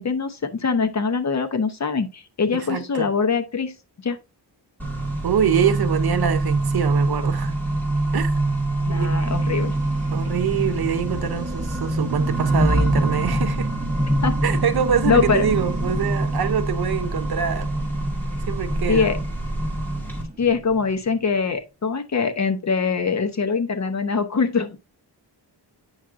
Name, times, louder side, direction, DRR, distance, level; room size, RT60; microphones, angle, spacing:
voice 1, 0.0-4.2 8.9-9.7 14.2-14.4 15.0-15.5 18.9-19.2 20.4-24.8, left 5 dB, 40° left, 0.8 m, -23 dB
voice 2, 2.7-3.1 5.2-7.5 8.1-8.3 8.9-9.3 10.1-13.7 14.4-17.7 18.5-19.1, right 8 dB, 60° right, 0.8 m, -24 dB
Accelerating revving vroom, 4.8-20.2, right 2 dB, 5° left, 2.0 m, -25 dB
sound 1, 9.2-21.1, equal, 20° right, 1.0 m, -31 dB
8.9 x 5.8 x 2.5 m
wide cardioid pair, 170°, 42 cm